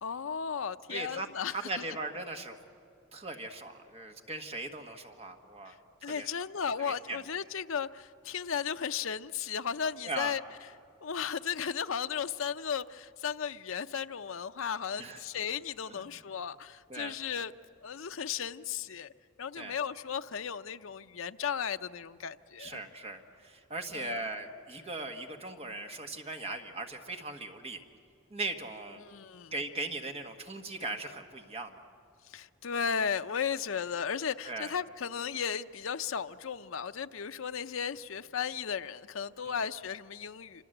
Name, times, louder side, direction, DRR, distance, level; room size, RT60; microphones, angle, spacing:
voice 1, 0.0-1.8 5.7-5.8 6.0-10.4 11.0-17.5 17.8-19.1 19.4-22.8 23.9-24.3 29.0-29.5 32.2-40.6, left 7 dB, 70° left, 0.6 m, -35 dB
voice 2, 0.9-2.6 3.1-6.3 6.8-7.2 10.0-10.3 15.0-15.2 15.9-16.0 16.9-17.2 19.6-19.8 22.6-27.8 28.3-29.0 29.5-31.7 34.4-34.7, right 2 dB, 30° right, 1.4 m, -39 dB
27.0 x 25.0 x 7.9 m
head